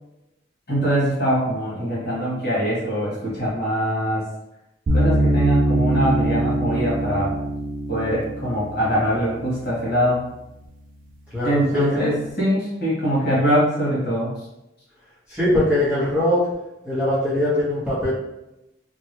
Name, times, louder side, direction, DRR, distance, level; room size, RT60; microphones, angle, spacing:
voice 1, 0.7-4.2 4.9-7.3 7.9-10.2 11.4-14.3, equal, 55° left, -7 dB, 1.5 m, -23 dB
sound 1, 4.9-10.0, right 1 dB, 45° right, 0.3 m, -23 dB
voice 2, 11.3-12.1 15.3-16.4 16.8-18.1, left 1 dB, 5° right, -11 dB, 1.2 m, -21 dB
3.0 x 2.4 x 3.0 m, 0.91 s
head